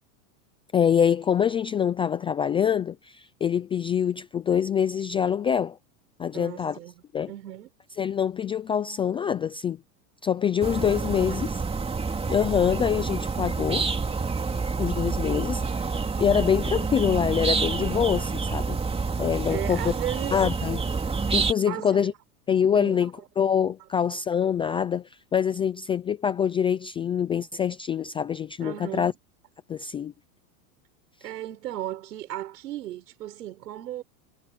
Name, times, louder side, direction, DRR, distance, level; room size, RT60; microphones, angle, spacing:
voice 1, 0.7-5.8 6.2-6.8 7.1-7.3 8.0-9.8 10.2-11.6 12.3-13.9 14.8-18.8 19.2-19.9 20.3-20.8 21.3-22.1 22.5-23.1 23.4-29.1 29.7-30.1, left 8 dB, 10° left, 0.4 m, -25 dB
voice 2, 6.3-6.9 7.3-7.7 11.0-11.4 19.5-20.4 21.7-22.1 22.7-23.3 28.6-29.1 31.2-34.0, right 13 dB, 90° right, 7.0 m, -36 dB
sound 1, 10.6-21.5, right 4 dB, 10° right, 3.0 m, -28 dB
supercardioid pair, 135°, 47 cm